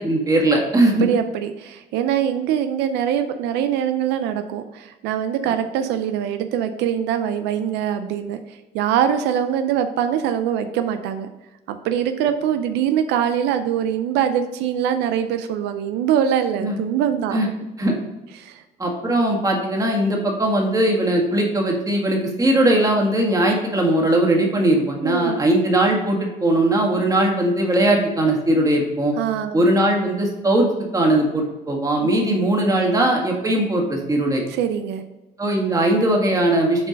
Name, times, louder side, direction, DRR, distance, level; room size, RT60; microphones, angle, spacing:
voice 1, 0.0-1.1 16.6-16.8 17.3-17.5 17.8-17.9 18.8-29.1 29.5-34.4 35.4-36.9, right 1 dB, 20° right, 0 dB, 1.9 m, -19 dB
voice 2, 1.0-11.3 11.7-17.4 18.4-18.6 25.0-25.4 29.2-29.6 34.5-35.0, right 9 dB, 90° right, 8 dB, 0.5 m, -23 dB
7.4 x 4.4 x 5.2 m, 1.1 s
cardioid pair, 110°, 17 cm